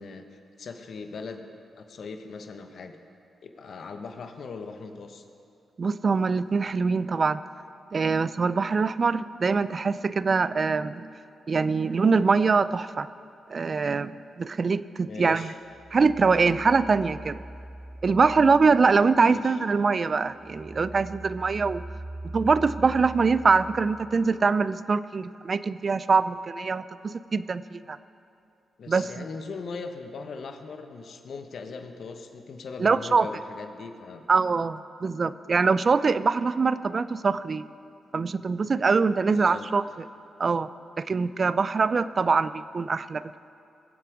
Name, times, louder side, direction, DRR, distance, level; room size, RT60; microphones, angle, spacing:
voice 1, 0.0-1.5 1.8-3.0 3.4-5.3 15.1-15.6 19.2-19.6 28.8-34.2 39.3-39.7, left 4 dB, 65° left, 6 dB, 1.1 m, -39 dB
voice 2, 5.8-7.4 7.9-11.1 11.5-13.1 13.5-15.5 15.9-17.4 18.0-21.8 22.3-28.0 28.9-29.2 32.8-33.3 34.3-37.6 38.1-39.8 40.4-40.7 41.0-43.2, right 4 dB, 50° right, 15 dB, 0.4 m, -23 dB
sound 1, 15.7-19.5 19.9-24.5, right 2 dB, 15° right, 1.6 m, -42 dB
22.0 x 7.7 x 4.8 m, 2.6 s
hypercardioid pair, 40°, 0 cm